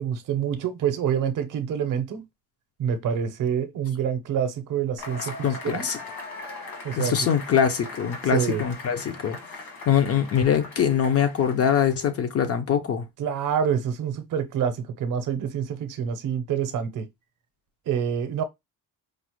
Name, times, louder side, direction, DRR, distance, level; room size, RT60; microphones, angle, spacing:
voice 1, 0.0-2.2 2.8-5.3 5.6-5.9 6.8-7.1 8.3-8.6 13.2-17.1 17.9-18.4, right 8 dB, 50° right, 0.7 m, -27 dB
Cheering / Applause / Crowd, 5.0-12.2, left 3 dB, 70° left, 1.6 m, -40 dB
voice 2, 5.4-6.0 7.0-13.0, left 8 dB, 40° left, 0.4 m, -23 dB
5.0 x 2.0 x 2.9 m
cardioid pair, 170°, 40 cm